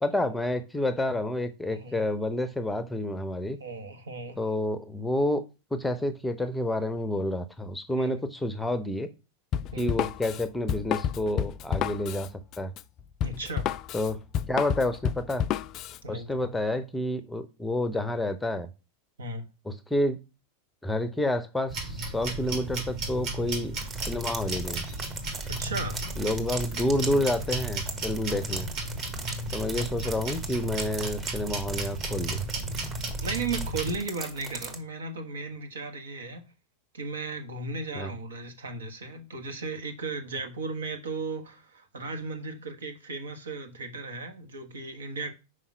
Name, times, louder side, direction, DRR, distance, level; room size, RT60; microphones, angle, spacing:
voice 1, 0.0-3.6 4.4-5.4 5.7-9.1 9.8-12.3 12.6-12.7 13.9-14.2 14.5-15.4 16.1-18.7 19.7-20.2 20.8-23.8 24.1-24.8 26.2-28.7 29.5-32.4 37.9-38.1, left 1 dB, 5° left, 0.7 m, -29 dB
voice 2, 1.7-2.0 3.6-4.5 8.0-8.3 9.7-9.9 13.2-13.7 16.0-16.3 19.2-19.5 25.5-26.0 33.2-36.4 36.9-45.3, right 3 dB, 65° right, 1.4 m, -36 dB
Drum kit, 9.5-16.0, left 9 dB, 35° left, 0.4 m, -30 dB
sound 1, 21.7-34.0, right 2 dB, 40° right, 3.6 m, -34 dB
sound 2, 23.8-34.8, right 4 dB, 20° right, 1.3 m, -40 dB
5.7 x 4.9 x 5.9 m
figure-of-eight pair, 90°, 0 cm